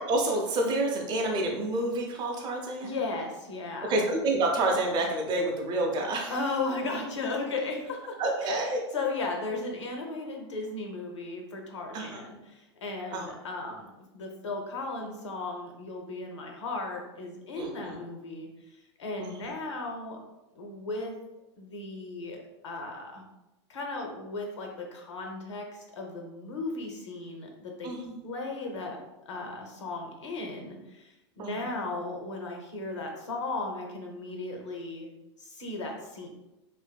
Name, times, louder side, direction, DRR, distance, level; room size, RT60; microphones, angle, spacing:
voice 1, 0.1-3.0 3.8-6.3 8.2-8.8 11.9-12.2 13.1-13.3 17.6-18.0 19.2-19.5 27.8-28.3 31.4-31.8, right 2 dB, 30° right, 0 dB, 0.5 m, -29 dB
voice 2, 2.8-4.0 6.3-8.2 8.4-20.2 20.5-21.1 21.6-23.2 23.7-27.9 28.2-36.3, left 3 dB, 80° left, 1 dB, 0.6 m, -36 dB
2.7 x 2.5 x 2.2 m, 0.96 s
hypercardioid pair, 100°, 15 cm